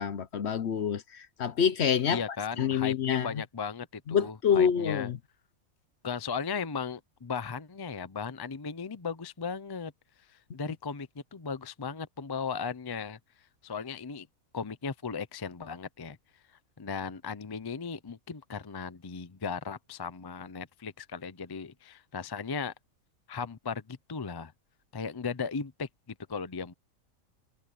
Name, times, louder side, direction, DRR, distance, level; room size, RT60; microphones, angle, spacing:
voice 1, 0.0-2.2 2.6-3.3 4.1-5.2, left 7 dB, 55° left, 1.0 m, -27 dB
voice 2, 2.1-5.1 6.0-9.9 10.3-13.2 13.6-14.3 14.5-16.2 16.8-22.7 23.3-24.5 24.9-26.7, left 5 dB, 25° left, 0.5 m, -36 dB
omnidirectional pair, 1.4 m